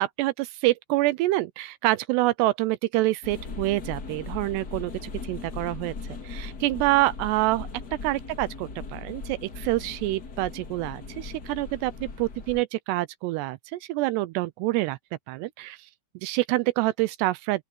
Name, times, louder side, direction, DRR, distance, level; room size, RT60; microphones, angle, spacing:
voice 1, 0.0-7.7 8.0-15.0 15.3-15.9 16.2-17.6, right 18 dB, 80° right, 2.5 m, -27 dB
sound 1, 3.2-12.6, left 4 dB, 40° left, 1.4 m, -39 dB
open air
omnidirectional pair, 5.2 m